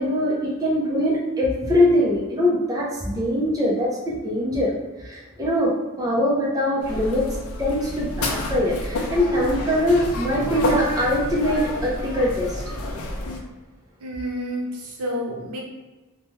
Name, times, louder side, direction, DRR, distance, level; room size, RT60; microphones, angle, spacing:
voice 1, 0.0-4.7 5.0-7.3 7.6-12.6, left 1 dB, 15° right, -5 dB, 0.5 m, -22 dB
Crowded fast food restaurant, 6.8-13.4, left 2 dB, 80° left, 0.5 m, -29 dB
voice 2, 14.0-15.6, equal, 85° right, -1 dB, 0.7 m, -29 dB
2.9 x 2.2 x 3.1 m, 1.2 s
head